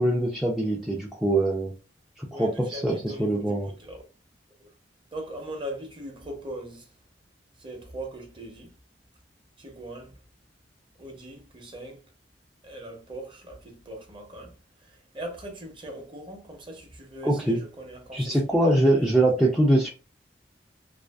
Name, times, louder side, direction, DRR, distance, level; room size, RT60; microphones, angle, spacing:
voice 1, 0.0-1.7 2.2-3.7 17.2-17.6 18.1-19.9, right 1 dB, ahead, 0.4 m, -23 dB
voice 2, 2.3-4.0 4.6-4.7 5.1-6.9 7.6-8.7 9.6-10.1 11.0-12.0 12.6-14.6 14.8-19.5, right 1 dB, 30° right, 0.7 m, -40 dB
2.5 x 2.3 x 2.3 m
head